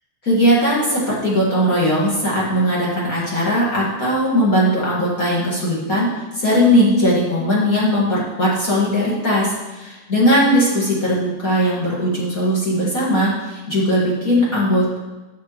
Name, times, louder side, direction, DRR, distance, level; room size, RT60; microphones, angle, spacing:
voice 1, 0.2-15.0, equal, 40° left, -7 dB, 2.3 m, -18 dB
13.5 x 6.5 x 3.1 m, 1.1 s
omnidirectional pair, 2.3 m